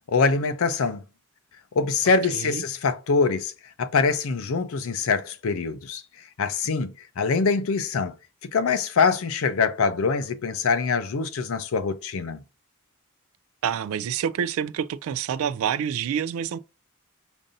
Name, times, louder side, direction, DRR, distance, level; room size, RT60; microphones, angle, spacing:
voice 1, 0.1-1.0 1.8-3.5 3.8-6.0 6.4-8.1 8.5-12.4, left 4 dB, 70° left, 0.5 m, -24 dB
voice 2, 2.3-2.6 13.6-16.6, right 8 dB, 70° right, 0.3 m, -27 dB
5.2 x 2.5 x 2.6 m
head